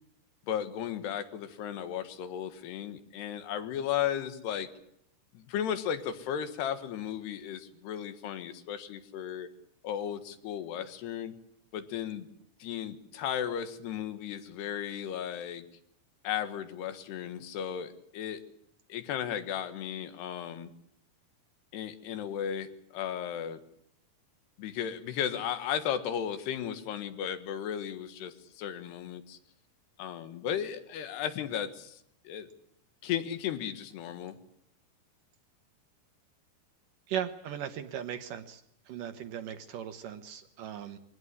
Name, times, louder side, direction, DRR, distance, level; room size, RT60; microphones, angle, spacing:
voice 1, 0.5-4.7 5.4-9.5 9.8-11.3 11.7-12.3 12.6-15.7 16.2-18.4 18.9-20.7 21.7-23.6 24.6-29.4 30.0-32.5 33.0-34.4, left 9 dB, 80° left, 10 dB, 3.6 m, -35 dB
voice 2, 37.1-38.6 38.9-41.0, right 9 dB, 70° right, 9 dB, 2.4 m, -37 dB
23.0 x 17.5 x 9.6 m, 0.73 s
omnidirectional pair, 4.7 m